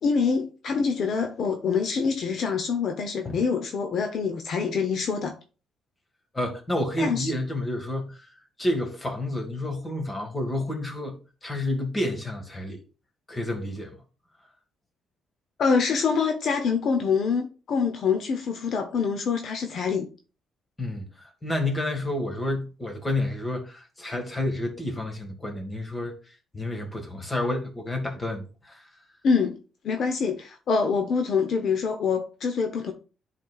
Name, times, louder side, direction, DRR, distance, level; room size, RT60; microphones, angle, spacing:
voice 1, 0.0-5.4 7.0-7.3 15.6-20.1 29.2-29.6 29.8-32.9, left 5 dB, 65° left, 0.8 m, -25 dB
voice 2, 6.3-12.8 13.3-14.0 20.8-26.1 26.5-28.9, left 1 dB, 20° left, 1.9 m, -30 dB
10.5 x 4.2 x 2.4 m
cardioid pair, 90°, 0 cm